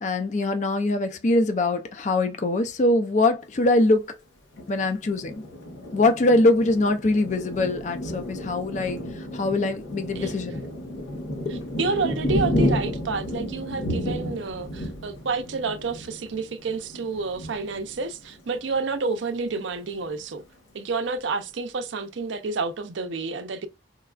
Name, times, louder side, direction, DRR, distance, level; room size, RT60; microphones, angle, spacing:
voice 1, 0.0-4.1 4.7-5.4 5.9-10.6 11.3-11.4, left 2 dB, 40° left, 0.4 m, -23 dB
Thunder, 4.5-18.9 19.4-19.5 19.8-20.4, equal, 85° left, 1.1 m, -32 dB
voice 2, 11.5-20.4 20.7-23.7, right 4 dB, 80° right, 0.5 m, -29 dB
4.4 x 2.3 x 2.3 m
head